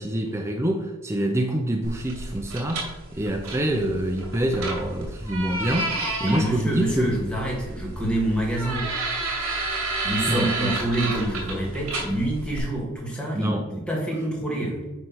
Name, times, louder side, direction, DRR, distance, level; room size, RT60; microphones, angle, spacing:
voice 1, 0.0-7.2 10.3-10.7 13.3-13.7, right 1 dB, 10° right, 3 dB, 0.5 m, -26 dB
sound 1, 1.8-12.6, right 2 dB, 70° right, 2.0 m, -31 dB
voice 2, 6.2-8.9 10.0-14.8, right 1 dB, 5° left, -3 dB, 2.1 m, -27 dB
9.3 x 3.3 x 6.1 m, 1.2 s
head